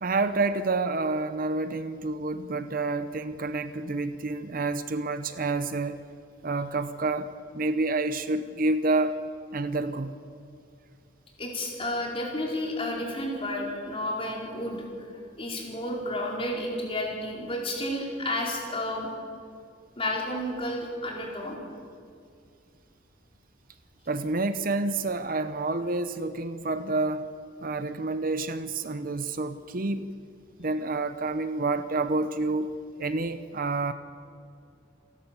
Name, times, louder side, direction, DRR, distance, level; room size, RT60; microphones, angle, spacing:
voice 1, 0.0-6.0 6.4-7.3 7.5-9.2 9.5-10.2 24.1-27.3 27.6-30.1 30.6-33.9, right 3 dB, 50° right, 11 dB, 0.7 m, -28 dB
voice 2, 11.4-15.1 15.4-19.1 20.0-21.6, left 1 dB, 30° left, -2 dB, 4.6 m, -31 dB
28.5 x 11.5 x 8.3 m, 2.4 s
head